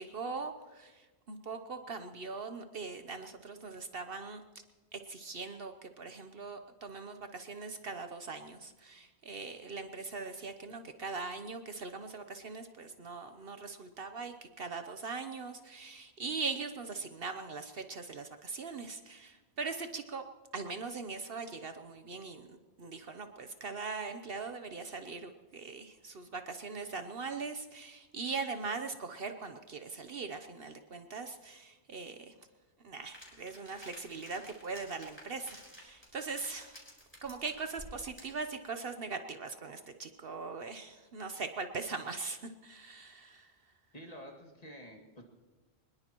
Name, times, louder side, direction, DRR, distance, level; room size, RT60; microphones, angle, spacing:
voice 1, 0.0-4.4 4.9-20.2 20.5-32.3 32.8-36.8 37.2-43.5, right 4 dB, 55° right, 7 dB, 1.0 m, -41 dB
sound 1, 33.1-38.4, equal, 10° left, 4.1 m, -53 dB
voice 2, 43.9-45.2, equal, 35° left, 1 dB, 2.2 m, -49 dB
23.5 x 20.5 x 3.0 m, 1.2 s
omnidirectional pair, 1.2 m